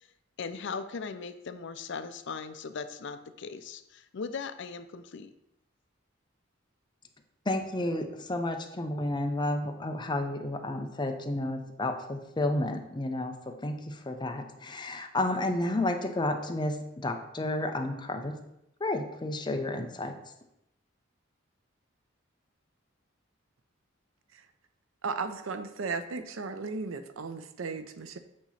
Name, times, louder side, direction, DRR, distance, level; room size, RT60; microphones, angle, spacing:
voice 1, 0.4-5.3, left 5 dB, 65° left, 10 dB, 0.5 m, -38 dB
voice 2, 7.5-18.4 18.8-20.2, left 1 dB, 25° left, 5 dB, 0.7 m, -31 dB
voice 3, 25.0-28.2, right 4 dB, 80° right, 10 dB, 0.6 m, -35 dB
8.5 x 3.0 x 5.7 m, 0.83 s
head